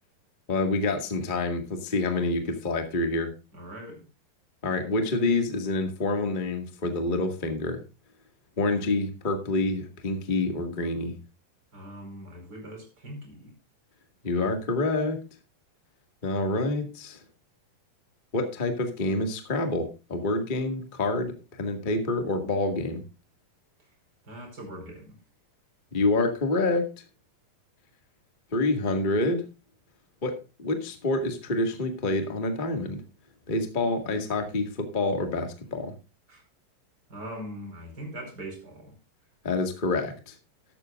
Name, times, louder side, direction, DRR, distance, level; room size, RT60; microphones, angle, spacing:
voice 1, 0.5-3.3 4.6-7.8 8.6-11.2 14.2-15.2 16.2-17.2 18.3-23.0 25.9-26.9 28.5-29.4 30.2-30.3 30.6-33.0 33.5-35.9 39.4-40.3, left 2 dB, 20° left, 4 dB, 1.4 m, -27 dB
voice 2, 3.5-4.0 11.7-13.5 24.2-25.2 36.3-36.4 37.1-38.9, right 1 dB, 25° right, 2 dB, 5.3 m, -41 dB
13.5 x 13.0 x 2.5 m, 0.30 s
omnidirectional pair, 4.0 m